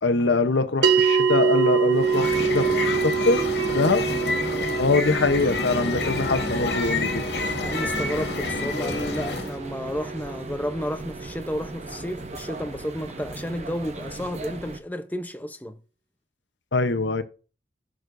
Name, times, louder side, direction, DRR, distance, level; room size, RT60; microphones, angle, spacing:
voice 1, 0.0-3.4 3.7-4.1 4.8-7.2 16.7-17.2, left 3 dB, 85° left, 0.9 m, -23 dB
sound 1, 0.8-11.4, right 6 dB, 85° right, 1.2 m, -26 dB
sound 2, 1.9-9.6, left 2 dB, 65° left, 2.1 m, -28 dB
sound 3, 5.7-14.8, right 2 dB, 35° right, 0.9 m, -38 dB
voice 2, 7.5-15.8, equal, 10° left, 0.6 m, -32 dB
16.0 x 6.3 x 2.6 m
head